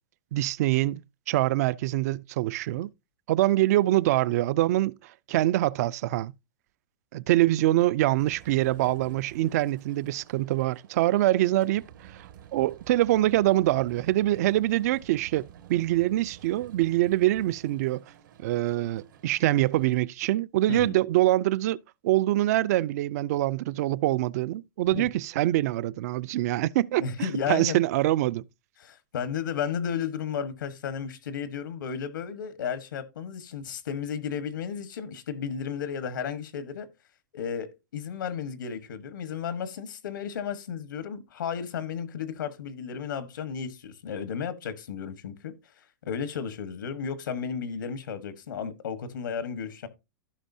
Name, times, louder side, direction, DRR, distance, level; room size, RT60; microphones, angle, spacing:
voice 1, 0.3-1.0 1.3-2.9 3.3-6.3 7.1-18.0 18.4-21.8 22.0-28.4, right 16 dB, 55° right, 0.4 m, -24 dB
sound 1, 8.2-20.0, right 10 dB, 80° right, 1.9 m, -51 dB
voice 2, 27.0-27.8 28.8-36.9 37.3-45.5 46.0-49.9, left 7 dB, 90° left, 1.4 m, -33 dB
15.0 x 5.4 x 2.7 m
supercardioid pair, 155°, 10 cm